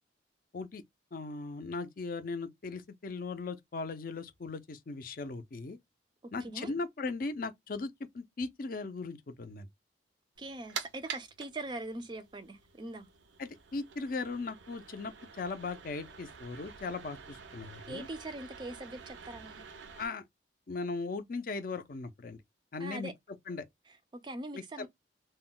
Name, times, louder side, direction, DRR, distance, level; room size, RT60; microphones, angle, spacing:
voice 1, 1.1-5.8 6.3-9.7 13.4-18.1 20.0-20.2 20.7-22.4 22.7-23.1 23.5-23.6 24.5-24.6, left 3 dB, 50° left, 0.5 m, -38 dB
voice 2, 6.2-6.7 10.4-13.1 17.9-19.6 22.8-23.1 23.9-24.9, right 2 dB, 25° right, 0.4 m, -42 dB
sound 1, 10.4-20.1, right 6 dB, 90° right, 0.5 m, -48 dB
2.2 x 2.1 x 3.7 m
head